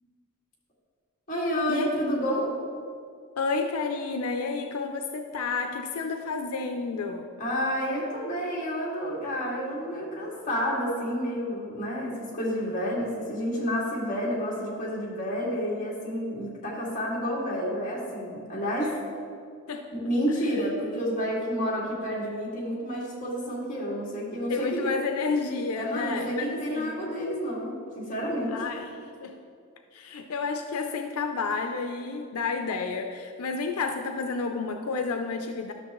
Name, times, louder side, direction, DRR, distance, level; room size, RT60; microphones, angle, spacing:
voice 1, 1.3-2.5 7.4-19.0 19.9-24.9 25.8-28.6, equal, 35° left, -5 dB, 2.1 m, -30 dB
voice 2, 3.4-7.3 19.7-19.9 24.5-26.9 28.5-28.9 29.2-29.4 29.9-35.7, left 4 dB, 85° left, 5 dB, 0.5 m, -30 dB
12.5 x 6.4 x 3.0 m, 2.3 s
head